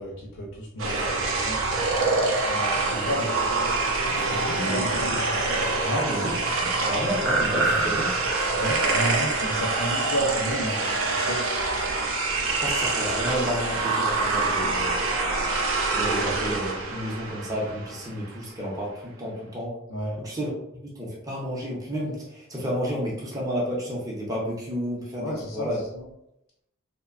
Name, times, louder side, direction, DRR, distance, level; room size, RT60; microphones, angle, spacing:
voice 1, 0.0-2.0 2.5-3.3 4.2-5.2 5.8-6.0 7.6-7.9 8.6-11.4 19.9-20.2 25.2-26.1, equal, 75° left, -3 dB, 0.5 m, -32 dB
sound 1, 0.8-18.1, right 3 dB, 75° right, 0.5 m, -25 dB
voice 2, 4.0-5.3 6.0-6.4 6.9-8.1 12.6-15.0 15.9-19.8 20.2-20.5 20.8-25.8, equal, 15° right, -4 dB, 0.6 m, -31 dB
2.7 x 2.1 x 2.4 m, 0.81 s
head